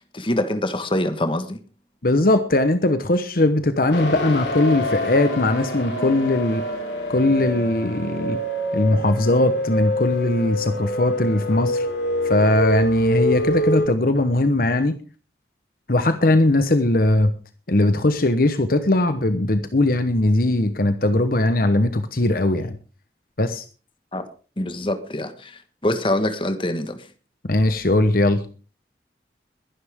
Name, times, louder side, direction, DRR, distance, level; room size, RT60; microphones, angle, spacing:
voice 1, 0.1-1.6 24.1-24.3 24.6-27.0, left 1 dB, 30° left, 1.5 m, -25 dB
voice 2, 2.0-6.6 7.1-8.4 8.7-11.9 12.2-15.0 15.9-17.3 17.7-22.8 23.4-23.6 27.5-28.4, left 1 dB, 55° left, 1.1 m, -19 dB
sound 1, 3.9-13.9, left 1 dB, 85° left, 5.1 m, -26 dB
22.0 x 11.0 x 3.7 m
head